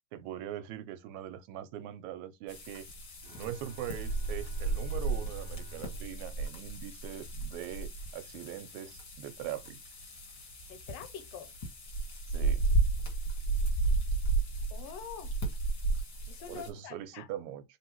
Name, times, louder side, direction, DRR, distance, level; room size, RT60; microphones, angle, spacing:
voice 1, 0.1-2.9 3.4-9.8 12.3-12.6 16.5-17.6, right 11 dB, 85° right, 2.0 m, -41 dB
sound 1, 2.5-16.7, right 3 dB, 40° left, 1.7 m, -33 dB
Bowed string instrument, 3.2-7.4, equal, 45° right, 0.8 m, -53 dB
voice 2, 10.7-11.5 14.7-15.3 16.3-17.3, left 8 dB, 75° left, 1.6 m, -45 dB
4.0 x 3.3 x 2.9 m
omnidirectional pair, 3.3 m